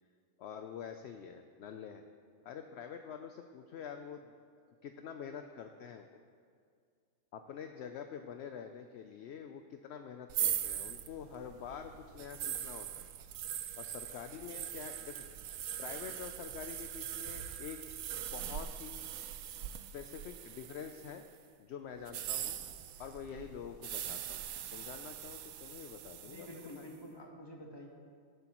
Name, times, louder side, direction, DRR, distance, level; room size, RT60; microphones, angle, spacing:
voice 1, 0.4-2.0 2.4-4.3 4.8-6.2 7.3-13.0 13.8-15.3 15.8-17.8 18.3-19.1 19.9-21.2 21.6-22.6 23.0-24.4 24.7-26.5 26.8-26.9, left 7 dB, 65° left, 6 dB, 0.7 m, -46 dB
sound 1, 10.3-21.3 22.0-26.9, right 10 dB, 80° right, 1.0 m, -41 dB
voice 2, 26.2-27.9, equal, 20° left, 0 dB, 1.3 m, -49 dB
19.0 x 7.9 x 3.0 m, 2.1 s
omnidirectional pair, 1.5 m